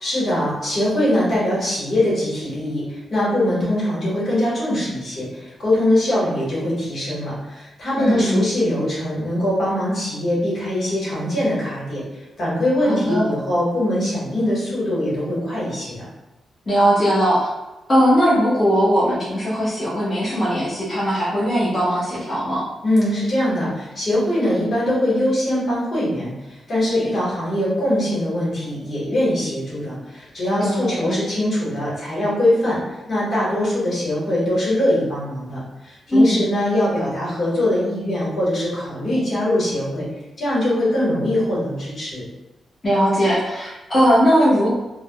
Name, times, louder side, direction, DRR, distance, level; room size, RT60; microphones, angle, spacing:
voice 1, 0.0-12.0 12.4-16.0 22.8-26.3 26.7-32.8 33.1-40.0 40.4-42.2, left 1 dB, 60° left, -7 dB, 1.3 m, -22 dB
voice 2, 8.0-8.4 12.8-13.2 16.7-17.5 17.9-22.6 30.4-31.2 36.1-36.4 42.8-44.7, equal, 30° left, -9 dB, 1.0 m, -19 dB
3.3 x 2.2 x 2.2 m, 1.0 s
cardioid pair, 80°, 0 cm